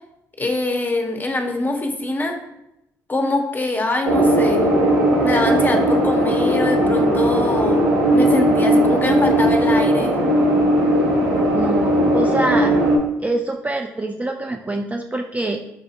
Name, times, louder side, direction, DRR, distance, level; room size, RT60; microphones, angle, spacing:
voice 1, 0.4-2.4 3.1-4.8 5.2-10.2, left 2 dB, 20° left, 4 dB, 0.7 m, -23 dB
sound 1, 4.0-13.0, right 1 dB, 80° right, 0.7 m, -17 dB
voice 2, 11.5-12.8 13.2-15.6, right 2 dB, 15° right, 2 dB, 0.4 m, -25 dB
5.1 x 2.5 x 2.4 m, 0.85 s
hypercardioid pair, 45°, 9 cm